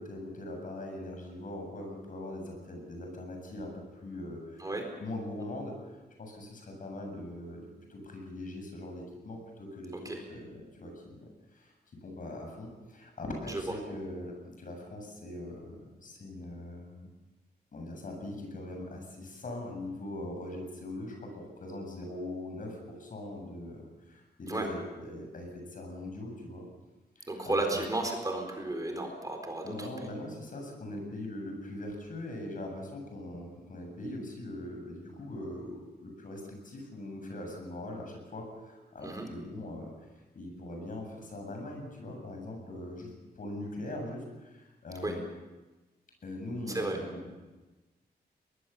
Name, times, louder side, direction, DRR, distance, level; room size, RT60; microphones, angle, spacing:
voice 1, 0.0-7.6 7.9-10.0 10.3-11.7 12.0-17.1 17.7-26.6 27.2-27.9 29.6-39.9 40.3-45.2 46.2-47.3, left 1 dB, 55° left, 2 dB, 7.6 m, -41 dB
voice 2, 27.3-29.9 39.0-39.3 45.0-45.2 46.7-47.0, right 2 dB, 20° right, 3 dB, 4.1 m, -33 dB
23.0 x 20.5 x 7.1 m, 1.2 s
wide cardioid pair, 125°, 17 cm